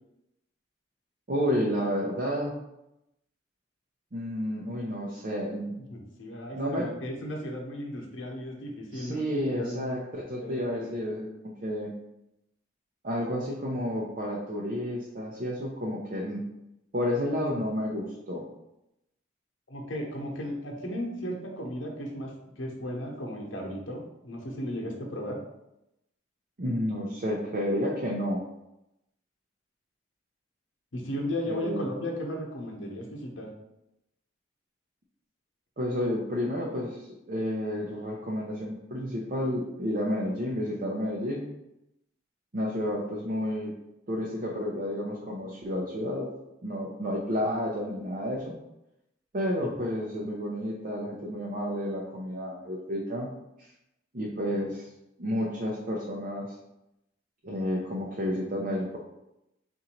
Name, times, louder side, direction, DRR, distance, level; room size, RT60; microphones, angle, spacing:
voice 1, 1.3-2.6 4.1-5.7 6.5-6.9 8.9-11.9 13.0-16.4 16.9-18.4 26.6-28.4 31.6-31.8 35.8-41.5 42.5-43.7 44.1-46.3 46.6-48.6 49.3-53.3 53.6-53.7 54.1-54.9 55.2-56.5 57.4-59.0, equal, 45° right, -3 dB, 0.6 m, -31 dB
voice 2, 5.9-9.9 10.4-11.1 19.7-25.4 30.9-33.5 49.6-49.7, equal, 75° left, 0 dB, 0.9 m, -35 dB
3.9 x 2.6 x 4.4 m, 0.87 s
head